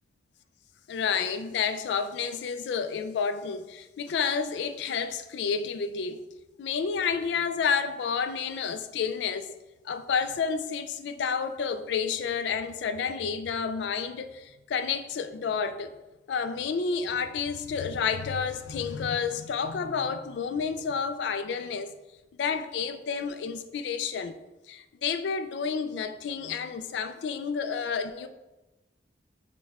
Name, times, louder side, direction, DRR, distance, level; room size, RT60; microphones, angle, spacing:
voice 1, 0.9-6.2 6.6-9.5 9.9-15.9 16.3-21.9 22.4-24.4 24.7-28.3, left 6 dB, 75° left, 0.3 m, -30 dB
6.2 x 2.2 x 3.5 m
head